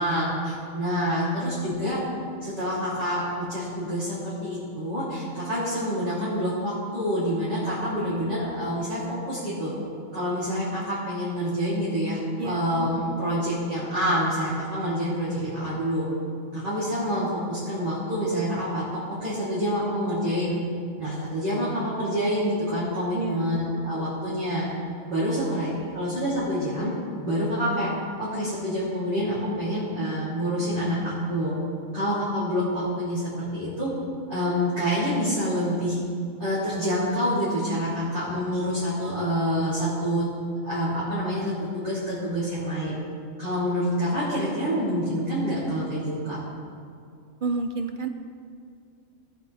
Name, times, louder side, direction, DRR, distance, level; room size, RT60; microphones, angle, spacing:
voice 1, 0.0-2.0 2.4-9.7 10.1-16.1 16.5-20.6 21.0-24.7 25.1-26.9 27.2-27.9 28.2-31.5 31.9-33.9 34.3-36.0 36.4-40.3 40.6-43.0 43.4-46.4, equal, 40° right, -13 dB, 3.7 m, -27 dB
voice 2, 7.5-8.3 12.4-12.7 23.1-23.5 25.3-26.0 47.4-48.1, right 4 dB, 55° right, 7 dB, 0.6 m, -32 dB
18.5 x 8.1 x 3.5 m, 2.3 s
omnidirectional pair, 1.3 m